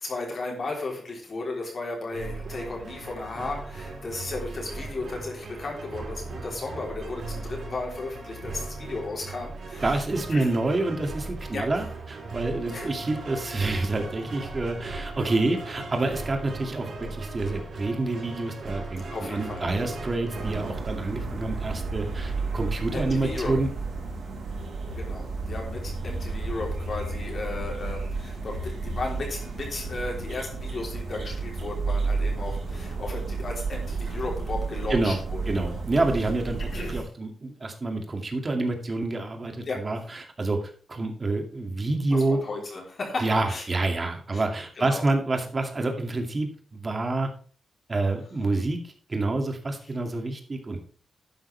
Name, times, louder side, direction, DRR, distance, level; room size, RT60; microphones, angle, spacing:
voice 1, 0.0-10.0 10.3-10.5 11.5-11.7 12.7-12.9 19.1-19.6 22.6-23.6 24.9-35.8 36.7-37.1 39.7-39.9 42.0-43.7 44.3-44.4 44.8-45.0, left 3 dB, 45° left, -1 dB, 3.6 m, -35 dB
sound 1, 2.1-20.7, right 3 dB, 70° right, 5.4 m, -38 dB
voice 2, 9.8-23.7 34.9-35.2 35.5-40.6 40.9-42.4 43.2-47.3 47.9-50.8, right 2 dB, 30° right, 4 dB, 2.4 m, -28 dB
sound 2, 20.3-37.0, right 3 dB, 85° right, 5.8 m, -32 dB
12.0 x 9.4 x 3.4 m, 0.41 s
wide cardioid pair, 120°, 0 cm